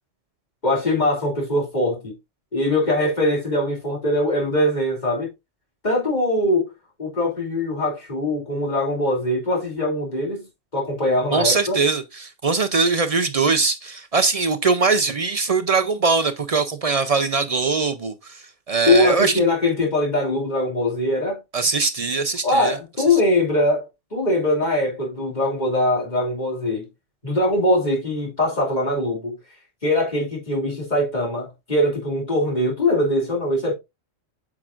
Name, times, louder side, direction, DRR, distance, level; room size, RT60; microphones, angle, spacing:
voice 1, 0.6-2.1 2.5-5.3 5.8-6.7 7.0-10.5 10.7-11.7 18.8-21.4 22.4-23.8 24.1-26.9 27.2-29.4 29.8-33.7, left 1 dB, 35° left, 2.9 m, -22 dB
voice 2, 11.3-19.3 21.5-22.8, right 4 dB, 50° right, 0.4 m, -21 dB
8.6 x 5.9 x 2.5 m
omnidirectional pair, 1.3 m